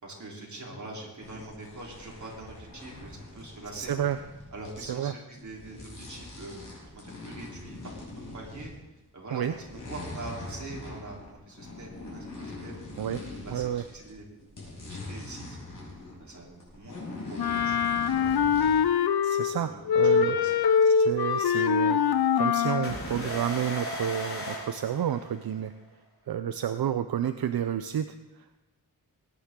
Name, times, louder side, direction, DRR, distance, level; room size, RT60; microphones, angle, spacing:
voice 1, 0.0-3.9 4.5-6.6 6.9-8.7 9.1-12.7 13.4-14.2 14.8-15.6 16.2-16.9 17.3-18.4 19.5-19.8 20.1-20.6, right 2 dB, 50° right, -3 dB, 3.7 m, -43 dB
sound 1, 1.2-4.9 5.3-9.0 9.4-14.1 14.4-18.8, left 2 dB, 55° left, 5.5 m, -43 dB
voice 2, 3.8-4.2 4.8-5.1 9.3-9.5 13.0-13.9 19.2-20.4 20.8-22.0 22.4-25.7 26.3-28.1 28.4-28.6, right 9 dB, 80° right, 10 dB, 0.6 m, -30 dB
Wind instrument woodwind instrument, 17.4-19.6 19.9-23.0, left 7 dB, 85° left, 0.6 m, -23 dB
sound 2, 22.8-25.6, left 1 dB, 35° left, 4.5 m, -36 dB
20.5 x 10.0 x 3.8 m, 1.0 s
wide cardioid pair, 105°, 37 cm